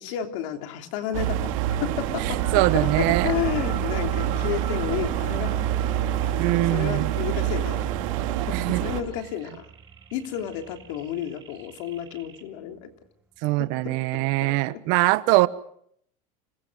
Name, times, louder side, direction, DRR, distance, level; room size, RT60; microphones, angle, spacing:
voice 1, 0.0-1.5 1.8-5.5 6.2-7.9 8.5-9.7 10.1-12.9 13.6-14.8, left 10 dB, 75° left, 5 dB, 3.2 m, -32 dB
sound 1, 1.1-9.0, right 11 dB, 85° right, 3.2 m, -26 dB
sound 2, 1.9-12.3 12.7-13.0, right 4 dB, 10° right, 2.0 m, -42 dB
voice 2, 2.3-3.3 6.4-7.1 8.5-8.8 13.4-15.5, right 20 dB, 60° right, 16 dB, 1.1 m, -22 dB
sound 3, 2.4-12.4, right 8 dB, 25° right, 5.1 m, -44 dB
26.5 x 21.5 x 6.3 m, 0.67 s
cardioid pair, 155°, 17 cm